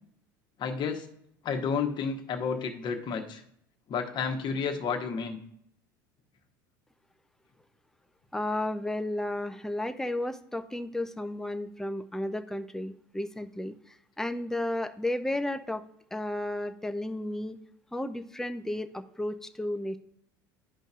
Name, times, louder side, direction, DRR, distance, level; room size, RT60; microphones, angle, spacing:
voice 1, 0.6-1.1 1.4-3.4 3.9-5.4, left 6 dB, 45° left, 5 dB, 1.2 m, -31 dB
voice 2, 8.3-13.7 14.2-15.8 16.1-17.6 17.9-20.0, left 1 dB, 5° left, 8 dB, 0.5 m, -33 dB
11.0 x 5.2 x 2.4 m, 0.71 s
hypercardioid pair, 75°, 11 cm